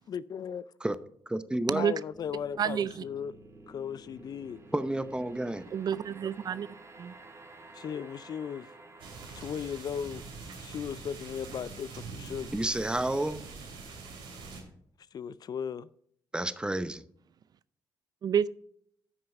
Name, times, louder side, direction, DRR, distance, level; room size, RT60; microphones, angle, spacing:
voice 1, 0.1-0.6 1.8-3.3 3.7-4.6 7.7-8.7 9.3-10.2 10.6-12.6 15.1-15.9, left 7 dB, 50° left, 0.4 m, -37 dB
voice 2, 1.3-1.9 4.7-5.7 12.5-13.4 16.3-17.0, right 1 dB, 10° right, 0.7 m, -30 dB
sound 1, 2.1-13.3, right 2 dB, 35° right, 3.1 m, -53 dB
voice 3, 2.6-2.9 5.7-6.7 7.0-7.1 18.2-18.5, right 8 dB, 50° right, 0.4 m, -28 dB
sound 2, 9.0-14.6, right 4 dB, 80° right, 2.9 m, -44 dB
9.4 x 6.2 x 5.3 m
supercardioid pair, 60°, 8 cm